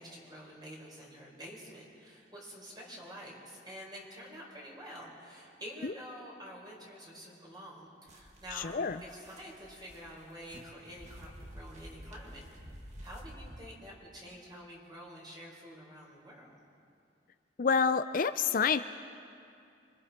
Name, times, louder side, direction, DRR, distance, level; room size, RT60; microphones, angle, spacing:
voice 1, 0.0-8.7 9.0-12.4 13.0-16.6, equal, 25° right, -3 dB, 5.1 m, -48 dB
sound 1, 8.1-13.6, equal, 40° right, 2.1 m, -50 dB
voice 2, 17.6-18.8, left 5 dB, 50° left, 11 dB, 0.5 m, -27 dB
26.0 x 25.0 x 4.4 m, 2.5 s
head